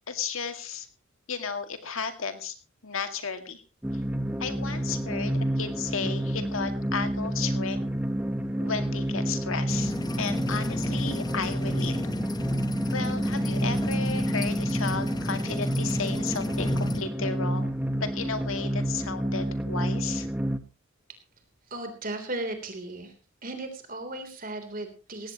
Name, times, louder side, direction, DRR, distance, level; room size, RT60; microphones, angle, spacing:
voice 1, 0.1-0.9 1.3-2.5 2.8-3.6 4.4-7.8 8.6-12.0 12.9-17.7 18.0-20.3, left 5 dB, 70° left, 8 dB, 2.1 m, -34 dB
sound 1, 3.8-20.6, right 1 dB, 5° right, 0.9 m, -29 dB
sound 2, 9.7-17.0, left 1 dB, 20° left, 1.0 m, -34 dB
voice 2, 21.7-23.1 23.4-25.3, right 2 dB, 40° right, 7 dB, 3.4 m, -36 dB
18.0 x 16.5 x 3.0 m, 0.33 s
head